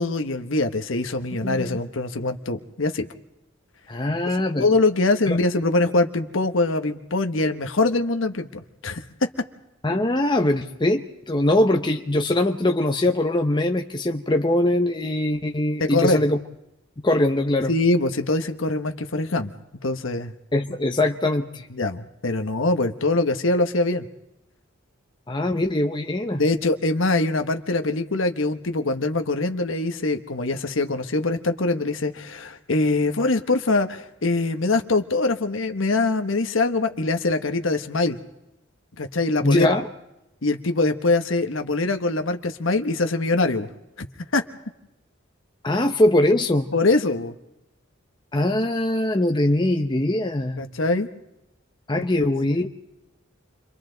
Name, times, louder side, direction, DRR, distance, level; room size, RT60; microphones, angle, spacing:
voice 1, 0.0-3.1 4.6-9.3 15.8-16.2 17.7-19.5 19.8-20.3 21.7-24.0 26.3-38.2 39.0-39.7 40.4-43.7 44.0-44.1 44.3-44.4 46.7-47.3 50.6-51.1 52.2-52.3, left 2 dB, 75° left, 7 dB, 1.2 m, -23 dB
voice 2, 1.4-1.8 3.9-4.7 5.3-5.4 9.8-16.4 17.0-17.7 20.5-21.7 25.3-26.4 39.4-39.9 45.6-46.7 48.3-50.7 51.9-52.7, left 1 dB, 25° left, 4 dB, 0.9 m, -22 dB
29.0 x 24.0 x 4.0 m, 0.90 s
head